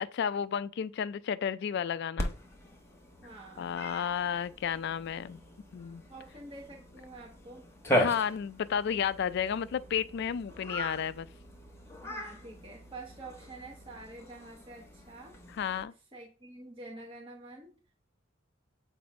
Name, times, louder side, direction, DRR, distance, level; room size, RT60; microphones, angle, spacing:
voice 1, 0.0-2.3 3.6-5.4 5.7-6.0 7.9-11.3 15.6-15.9, left 8 dB, 60° left, 0.3 m, -32 dB
Cat, 2.2-15.8, equal, 15° left, 1.1 m, -38 dB
voice 2, 3.2-3.7 6.1-7.7 12.0-15.4 16.1-17.9, right 2 dB, 30° right, 1.1 m, -48 dB
7.7 x 2.6 x 5.1 m
head